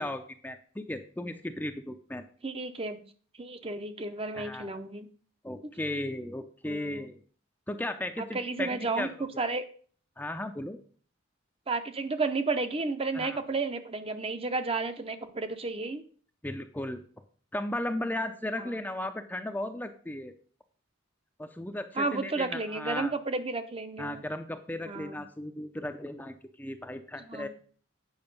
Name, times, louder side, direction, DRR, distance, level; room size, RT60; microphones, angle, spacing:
voice 1, 0.0-2.2 4.3-4.7 5.4-7.2 7.7-8.7 9.0-9.1 10.2-10.8 13.1-13.4 16.4-17.0 17.5-20.3 21.4-23.1 24.0-27.5, left 1 dB, 10° left, 7 dB, 0.5 m, -35 dB
voice 2, 2.4-3.0 3.4-5.1 6.6-7.1 8.3-9.1 9.4-9.6 11.7-16.0 18.6-18.8 22.0-24.2 24.9-25.2 27.2-27.5, right 3 dB, 30° right, 9 dB, 0.7 m, -32 dB
8.8 x 5.6 x 5.3 m, 0.44 s
head